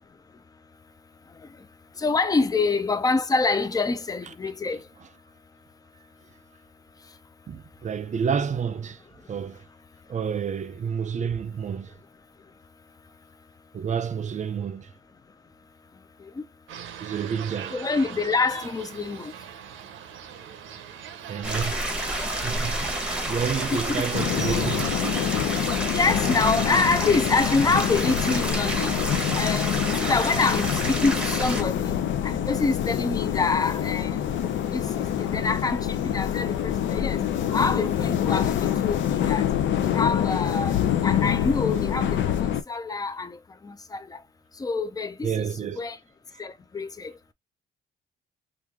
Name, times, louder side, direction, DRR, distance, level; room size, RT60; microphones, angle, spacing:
voice 1, 2.0-4.8 17.7-19.3 23.9-24.1 25.8-29.0 29.4-32.0 32.2-34.3 34.7-37.2 37.5-39.5 39.8-43.4 43.6-44.2 44.6-46.0 46.4-47.1, left 4 dB, 20° left, 0.4 m, -26 dB
voice 2, 7.5-9.0 9.3-9.6 10.1-11.9 13.7-14.9 17.0-17.8 21.3-22.9 23.2-25.2 37.3-37.4 45.2-45.8, right 7 dB, 40° right, 0.5 m, -30 dB
sound 1, 16.7-26.1, right 9 dB, 80° right, 0.6 m, -41 dB
sound 2, 21.4-31.6, right 1 dB, 5° right, 1.0 m, -29 dB
sound 3, 24.1-42.6, left 10 dB, 70° left, 0.5 m, -26 dB
3.1 x 2.5 x 3.6 m
cardioid pair, 90°, 20 cm